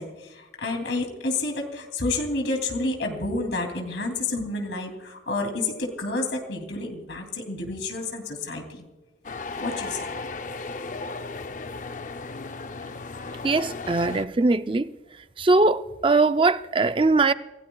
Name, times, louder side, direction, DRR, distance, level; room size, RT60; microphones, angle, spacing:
voice 1, 0.0-8.9 9.6-10.1, left 2 dB, 85° left, 2.9 m, -29 dB
sound 1, 9.2-14.3, left 3 dB, 45° left, 0.6 m, -35 dB
voice 2, 13.4-14.9 15.4-17.3, right 3 dB, 30° right, 0.5 m, -21 dB
27.5 x 17.0 x 2.3 m
head